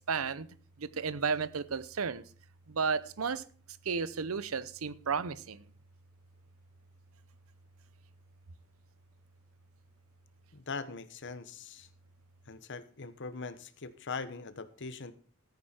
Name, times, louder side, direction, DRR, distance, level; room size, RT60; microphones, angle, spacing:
voice 1, 0.1-0.5 0.8-2.2 2.7-3.4 3.9-5.6, right 5 dB, 75° right, 17 dB, 0.7 m, -33 dB
voice 2, 10.5-11.9 12.5-15.1, left 4 dB, 60° left, 14 dB, 1.0 m, -41 dB
14.5 x 9.3 x 4.4 m, 0.42 s
head